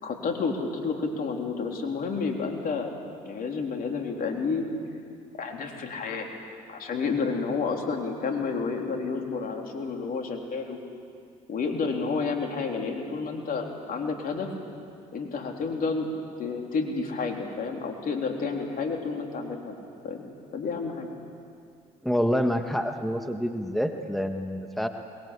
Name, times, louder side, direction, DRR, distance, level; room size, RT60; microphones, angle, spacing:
voice 1, 0.0-2.9 3.2-4.7 5.3-6.3 6.7-10.8 11.5-14.5 15.1-16.1 16.4-19.8 20.0-20.3 20.5-21.1, left 4 dB, 55° left, 2 dB, 3.7 m, -30 dB
voice 2, 22.0-24.9, equal, ahead, 5 dB, 1.7 m, -27 dB
22.5 x 21.5 x 8.5 m, 2.4 s
hypercardioid pair, 55°, 17 cm